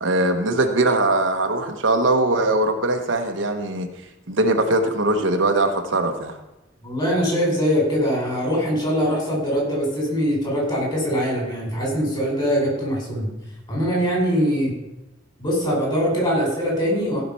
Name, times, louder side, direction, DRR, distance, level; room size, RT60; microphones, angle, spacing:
voice 1, 0.0-3.9 4.3-6.3, right 2 dB, 80° right, 4 dB, 1.3 m, -21 dB
voice 2, 6.8-13.3 13.7-14.7 15.4-17.2, equal, 25° left, -2 dB, 5.1 m, -22 dB
15.0 x 5.9 x 5.6 m, 0.94 s
head